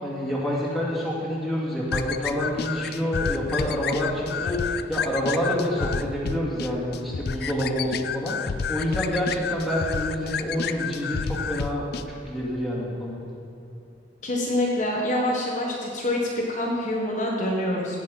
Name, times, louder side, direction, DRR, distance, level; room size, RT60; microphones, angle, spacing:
voice 1, 0.0-4.6 4.9-13.2, equal, ahead, -6 dB, 2.5 m, -27 dB
sound 1, 1.9-12.1, left 6 dB, 55° left, 0.4 m, -30 dB
voice 2, 14.2-16.2 16.5-18.0, left 1 dB, 40° left, -3 dB, 1.4 m, -26 dB
17.0 x 6.8 x 5.4 m, 2.7 s
head